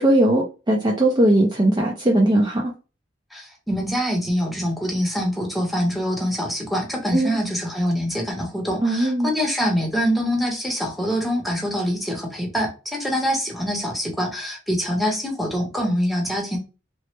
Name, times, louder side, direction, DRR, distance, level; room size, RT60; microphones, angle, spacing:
voice 1, 0.0-2.7 7.1-7.4 8.8-9.3, right 1 dB, 25° right, -1 dB, 0.5 m, -19 dB
voice 2, 3.3-16.6, equal, ahead, 0 dB, 0.8 m, -24 dB
3.0 x 2.0 x 3.2 m, 0.32 s
head